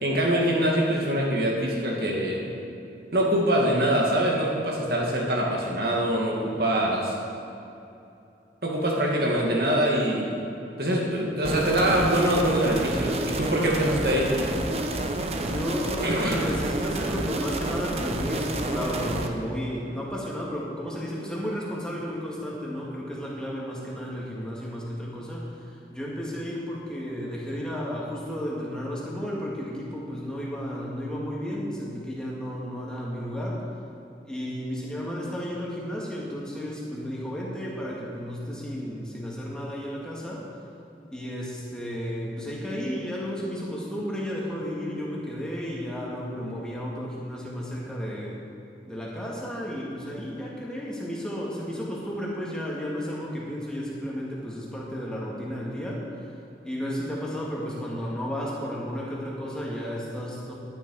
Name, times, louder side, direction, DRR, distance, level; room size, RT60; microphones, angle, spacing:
voice 1, 0.0-2.5 3.1-7.1 8.6-10.3 10.8-14.4 16.0-16.4, right 1 dB, 60° right, -2 dB, 2.2 m, -24 dB
sound 1, 11.4-19.3, right 1 dB, 35° right, 0.8 m, -29 dB
voice 2, 15.4-33.6 34.2-40.4 41.1-48.4 48.9-56.4 56.6-60.5, equal, 5° left, -5 dB, 2.1 m, -33 dB
12.5 x 10.5 x 4.8 m, 2.7 s
head